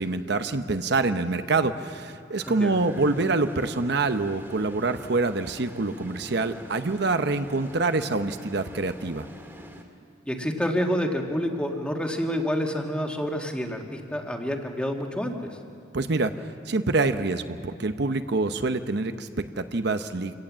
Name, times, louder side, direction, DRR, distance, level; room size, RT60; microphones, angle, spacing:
voice 1, 0.0-9.3 15.9-20.3, right 3 dB, 65° right, 9 dB, 0.9 m, -26 dB
sound 1, 2.4-9.8, equal, 15° right, 2.4 m, -46 dB
voice 2, 10.3-15.5, equal, 5° left, 2 dB, 1.9 m, -28 dB
27.0 x 18.0 x 7.5 m, 2.3 s
head